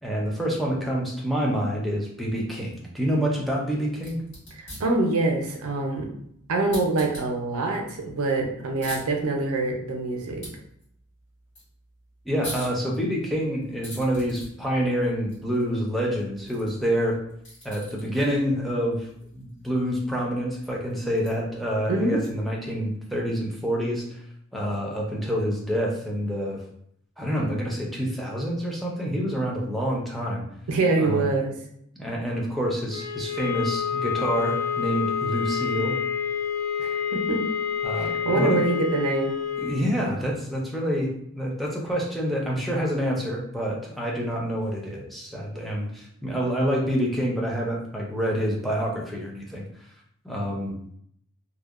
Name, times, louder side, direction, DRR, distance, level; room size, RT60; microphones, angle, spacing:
voice 1, 0.0-4.2 12.3-17.2 17.6-19.1 19.3-24.2 24.5-26.6 27.2-30.4 31.0-31.3 32.0-36.0 37.8-38.6 39.6-41.1 41.3-49.6 50.2-50.7, equal, ahead, -3 dB, 0.4 m, -27 dB
sound 1, 3.9-22.6, equal, 55° left, 1.4 m, -46 dB
voice 2, 4.6-6.1 6.5-10.5 21.9-22.2 30.7-31.5 36.8-37.4 37.9-39.4, right 2 dB, 80° right, 2 dB, 0.5 m, -25 dB
sound 2, 32.9-39.9, left 7 dB, 70° left, 0.7 m, -28 dB
2.7 x 2.0 x 2.3 m, 0.71 s
head